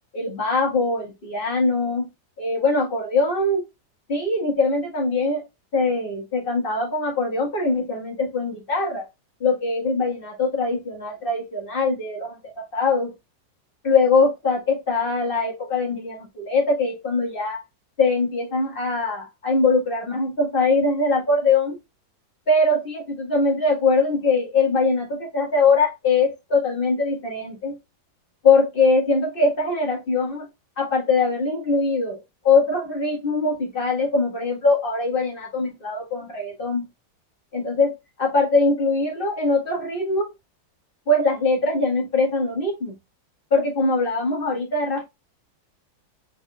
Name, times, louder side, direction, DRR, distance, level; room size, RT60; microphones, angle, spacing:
voice 1, 0.1-2.1 2.4-3.6 4.1-5.4 5.7-9.1 9.4-13.1 13.8-17.6 18.0-21.8 22.5-27.8 28.4-30.5 30.8-32.2 32.4-36.8 37.5-40.3 41.1-43.0 43.5-45.1, left 3 dB, 30° left, 1.7 m, -22 dB
4.8 x 4.0 x 2.3 m
omnidirectional pair, 2.0 m